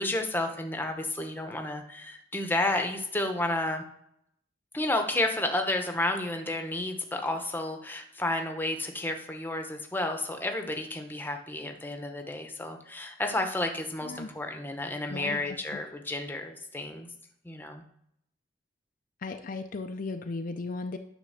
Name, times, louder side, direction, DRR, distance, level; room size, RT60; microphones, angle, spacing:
voice 1, 0.0-3.8 4.7-17.1 17.4-17.8, left 1 dB, 10° left, 4 dB, 0.9 m, -31 dB
voice 2, 15.1-15.8 19.2-21.0, left 3 dB, 50° left, 7 dB, 0.5 m, -36 dB
9.8 x 3.5 x 6.4 m, 0.74 s
head